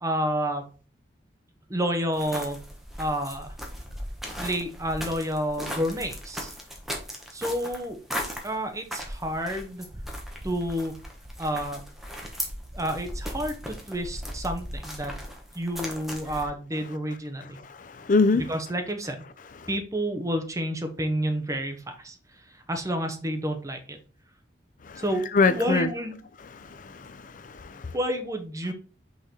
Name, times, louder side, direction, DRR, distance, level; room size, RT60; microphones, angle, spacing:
voice 1, 0.0-0.6 1.7-2.6 3.0-3.5 4.4-6.5 7.3-8.0 8.4-9.9 10.4-10.9 11.4-11.8 12.7-15.1 15.5-17.6 18.3-19.2 19.7-22.2 22.7-24.0 25.0-26.2 27.9-28.7, equal, 20° right, 1.0 m, -29 dB
sound 1, 2.1-16.5, equal, ahead, 1.3 m, -37 dB
voice 2, 17.7-18.4 24.9-25.0 25.3-25.9 26.6-27.9, left 3 dB, 45° left, 0.5 m, -24 dB
5.6 x 4.7 x 4.4 m
head